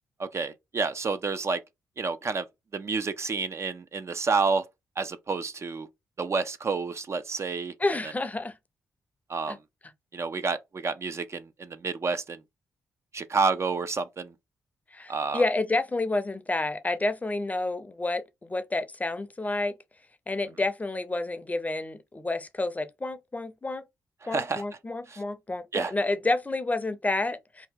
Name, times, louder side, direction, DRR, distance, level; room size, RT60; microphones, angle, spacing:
voice 1, 0.2-1.6 2.0-2.5 2.7-4.6 5.0-5.9 6.2-7.7 9.3-9.6 10.1-12.4 13.1-14.3 15.1-15.4 24.2-24.6 25.1-25.2 25.7-25.9, right 4 dB, 40° right, 0.4 m, -29 dB
voice 2, 7.8-8.6 9.5-9.6 14.9-19.7 20.3-23.8 24.3-27.7, left 2 dB, 20° left, 0.5 m, -29 dB
2.8 x 2.2 x 3.6 m
hypercardioid pair, 45°, 7 cm